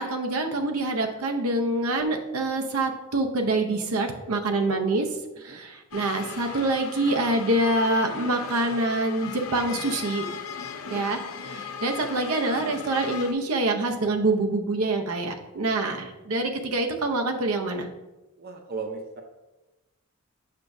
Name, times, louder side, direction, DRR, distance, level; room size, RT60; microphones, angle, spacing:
voice 1, 0.0-5.1 5.4-10.3 10.9-11.2 11.5-17.9, right 2 dB, 85° right, 4 dB, 0.7 m, -26 dB
sound 1, 5.9-13.3, left 6 dB, 70° left, 0.5 m, -37 dB
voice 2, 18.4-19.2, right 4 dB, 45° right, 4 dB, 0.6 m, -36 dB
6.7 x 5.8 x 2.6 m, 1.1 s
head